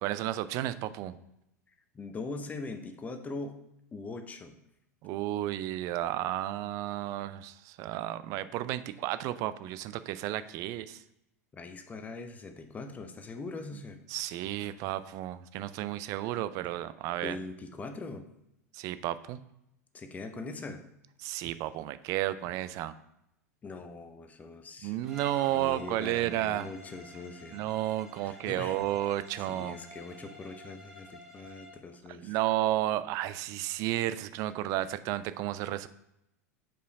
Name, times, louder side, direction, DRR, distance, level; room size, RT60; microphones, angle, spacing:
voice 1, 0.0-1.2 5.0-11.0 14.1-17.4 18.7-19.4 21.2-22.9 24.8-26.7 27.5-29.8 32.2-35.9, right 14 dB, 40° right, 14 dB, 0.3 m, -32 dB
voice 2, 1.9-3.6 3.9-4.6 11.5-14.0 17.2-18.2 19.9-20.8 23.6-24.9 25.5-27.6 28.2-28.8 29.4-32.4, left 3 dB, 15° left, 7 dB, 0.6 m, -41 dB
Bowed string instrument, 25.0-31.8, left 1 dB, 5° right, 1.8 m, -50 dB
5.1 x 4.5 x 4.7 m, 0.83 s
figure-of-eight pair, 85°, 9 cm